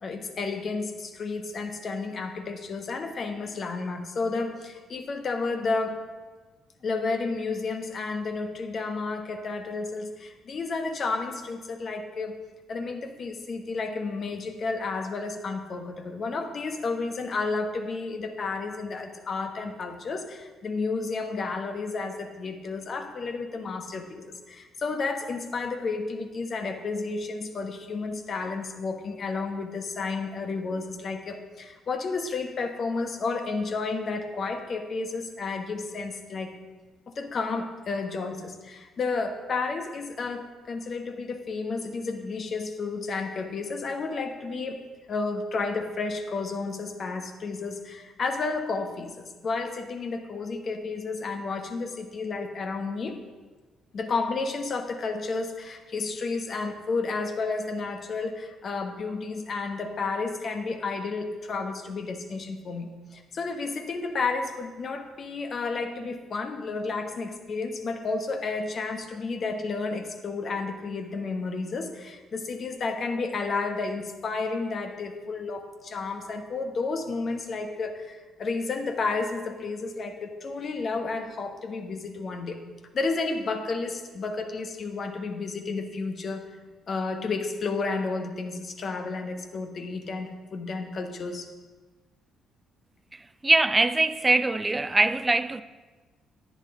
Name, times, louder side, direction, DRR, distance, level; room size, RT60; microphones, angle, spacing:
voice 1, 0.0-6.0 6.8-12.4 12.7-36.6 37.1-44.8 45.1-53.2 53.9-82.6 82.9-86.5 86.9-91.5, left 4 dB, 50° left, 1.1 m, -31 dB
voice 2, 93.1-95.6, right 2 dB, 20° right, 0.5 m, -23 dB
10.5 x 9.6 x 3.7 m
hypercardioid pair, 50°, 0 cm